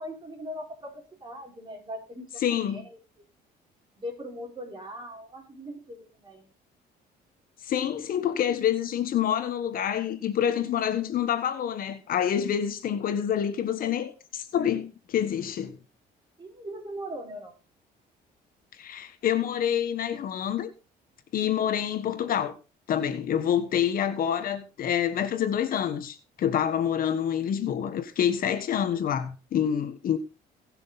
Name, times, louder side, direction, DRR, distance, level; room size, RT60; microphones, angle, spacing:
voice 1, 0.0-3.0 3.9-6.5 16.4-17.5, equal, 25° right, 5.1 m, -40 dB
voice 2, 2.4-2.8 7.6-15.8 18.7-20.7 21.3-22.6 22.9-30.2, left 9 dB, 55° left, 1.4 m, -27 dB
19.5 x 6.5 x 4.1 m
cardioid pair, 110°, 17 cm